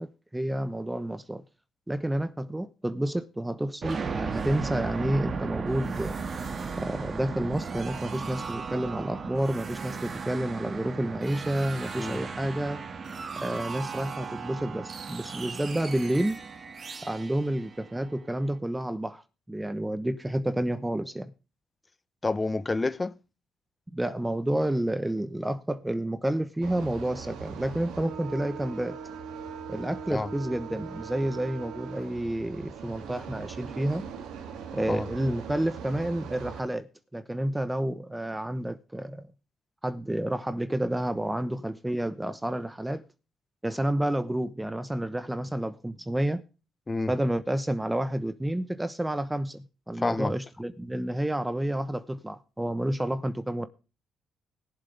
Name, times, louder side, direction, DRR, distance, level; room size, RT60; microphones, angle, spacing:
voice 1, 0.0-1.4 1.9-6.2 6.8-12.8 13.4-16.4 17.0-19.2 19.5-21.3 23.9-29.0 29.7-34.0 34.7-39.3 39.8-43.0 43.6-46.4 47.1-53.7, right 1 dB, 10° right, 1.1 m, -30 dB
sound 1, 3.8-18.5, right 5 dB, 40° right, 2.0 m, -36 dB
voice 2, 22.2-23.1 30.1-30.3 34.9-35.1 46.9-47.1 50.0-50.3, left 3 dB, 20° left, 0.9 m, -28 dB
sound 2, 26.6-36.6, right 6 dB, 85° right, 2.4 m, -40 dB
21.0 x 7.6 x 3.4 m
cardioid pair, 90°, 0 cm